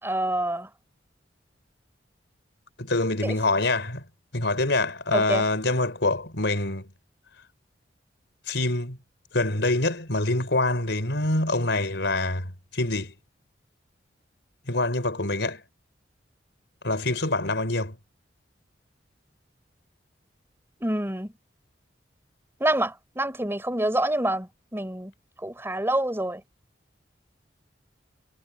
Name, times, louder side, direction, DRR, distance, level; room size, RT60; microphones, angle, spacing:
voice 1, 0.0-0.7 3.2-3.3 5.1-5.4 20.8-21.3 22.6-25.1 25.4-26.4, right 1 dB, 15° right, 3.9 m, -27 dB
voice 2, 2.8-4.0 4.3-6.9 8.5-9.0 9.3-13.1 14.7-15.6 16.8-18.0, left 2 dB, 70° left, 5.3 m, -25 dB
head